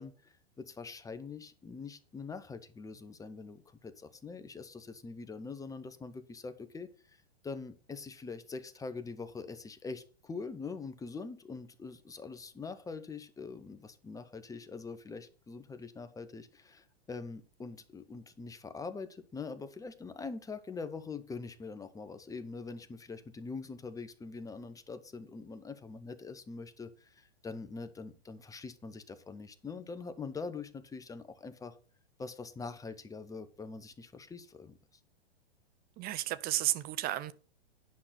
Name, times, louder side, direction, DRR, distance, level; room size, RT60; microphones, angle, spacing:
voice 1, 0.0-7.2 7.4-31.8 32.2-34.8, left 4 dB, 10° left, 1.1 m, -44 dB
voice 2, 36.0-37.3, right 14 dB, 30° right, 0.8 m, -32 dB
10.5 x 5.9 x 5.9 m
hypercardioid pair, 105°, 32 cm